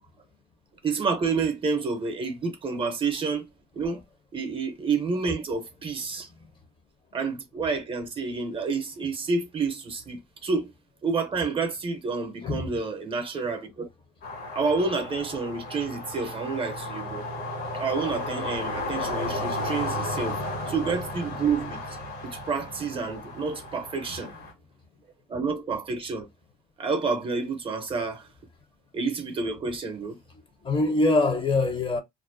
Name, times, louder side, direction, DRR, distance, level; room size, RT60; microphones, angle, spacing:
voice 1, 0.8-3.5 3.7-4.0 4.3-6.3 7.1-10.7 11.0-13.9 14.5-17.3 17.7-20.4 20.7-21.8 22.2-24.3 25.3-26.3 26.8-28.3 28.9-30.2, right 4 dB, 30° right, 0.6 m, -29 dB
sound 1, 14.2-24.5, left 2 dB, 75° left, 1.2 m, -34 dB
voice 2, 30.6-32.0, left 2 dB, 30° left, 0.6 m, -23 dB
2.4 x 2.1 x 2.5 m
cardioid pair, 110°, 17 cm